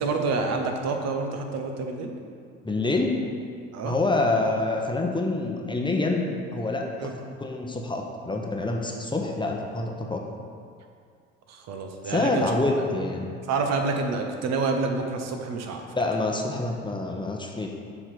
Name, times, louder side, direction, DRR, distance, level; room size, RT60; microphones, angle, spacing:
voice 1, 0.0-2.1 3.7-4.0 7.0-7.1 11.5-12.5 12.8-12.9 13.5-15.8, right 4 dB, 60° right, 4 dB, 0.9 m, -28 dB
voice 2, 2.6-3.1 3.8-10.2 12.0-13.4 16.0-17.7, left 2 dB, 15° left, 1 dB, 0.8 m, -27 dB
7.1 x 3.3 x 6.0 m, 2.2 s
hypercardioid pair, 70°, 30 cm